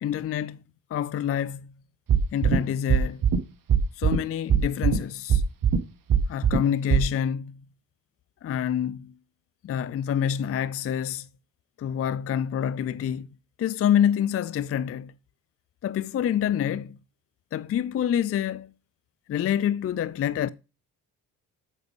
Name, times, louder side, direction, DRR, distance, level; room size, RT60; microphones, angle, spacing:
voice 1, 0.0-0.6 0.9-1.7 2.3-3.3 4.0-5.4 6.3-7.6 8.4-9.1 9.6-11.3 11.8-13.3 13.6-15.1 15.8-17.0 17.5-18.7 19.3-20.5, left 9 dB, 30° left, 0.5 m, -27 dB
sound 1, 2.1-2.6 2.9-3.4 3.7-4.2 4.5-5.0 5.3-5.8 6.1-6.6 6.9-7.0, right 8 dB, 45° right, 1.3 m, -20 dB
8.1 x 6.4 x 3.5 m
hypercardioid pair, 50°, 47 cm